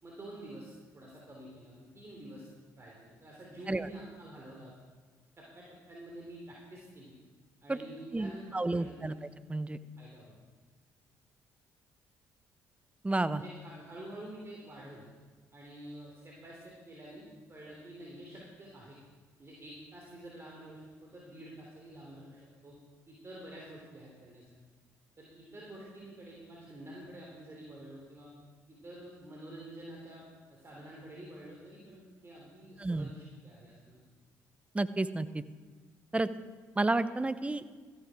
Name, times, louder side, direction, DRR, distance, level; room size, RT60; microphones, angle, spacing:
voice 1, 0.0-2.5 2.7-4.7 5.4-7.2 7.6-9.1 10.0-10.2 13.3-15.1 15.5-19.0 19.4-22.8 23.1-24.5 25.2-28.3 28.7-30.2 30.5-34.0, right 1 dB, 30° right, -3 dB, 3.3 m, -48 dB
voice 2, 8.1-9.2 9.5-9.8 13.0-13.4 32.8-33.1 34.7-35.4 36.1-36.3 36.8-37.6, right 2 dB, 15° right, 13 dB, 0.7 m, -31 dB
14.0 x 10.5 x 4.8 m, 1.5 s
figure-of-eight pair, 45°, 9 cm